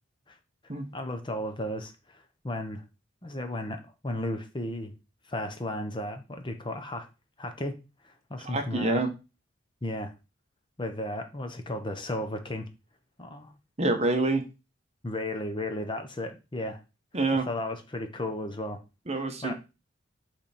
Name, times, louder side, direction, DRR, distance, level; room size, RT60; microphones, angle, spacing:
voice 1, 0.9-2.8 3.2-4.9 5.3-7.1 7.4-7.8 8.0-9.0 9.8-10.1 10.8-12.7 13.2-13.5 15.0-16.8 17.5-18.8 19.1-19.5, left 1 dB, 25° left, 6 dB, 0.9 m, -34 dB
voice 2, 8.4-9.1 13.8-14.4 17.1-17.4 19.1-19.5, right 2 dB, 35° right, 6 dB, 1.0 m, -26 dB
8.8 x 3.5 x 4.3 m, 0.29 s
head